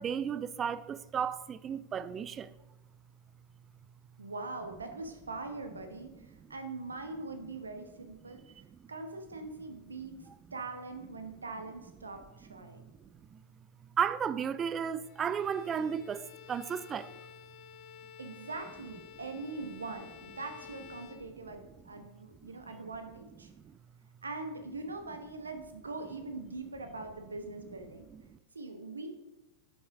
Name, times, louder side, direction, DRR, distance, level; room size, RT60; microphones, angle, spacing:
voice 1, 0.0-2.5 6.4-6.5 10.3-10.4 12.8-12.9 13.3-13.4 14.0-17.1 22.4-22.5 28.3-28.4, right 7 dB, 25° right, 0.4 m, -34 dB
voice 2, 4.2-8.4 8.9-10.1 10.5-12.8 18.2-23.5 24.2-28.1 28.5-29.1, right 3 dB, 75° right, 1.1 m, -42 dB
Bowed string instrument, 15.0-21.8, left 10 dB, 45° left, 0.7 m, -52 dB
11.0 x 6.2 x 3.6 m
figure-of-eight pair, 90°, 0 cm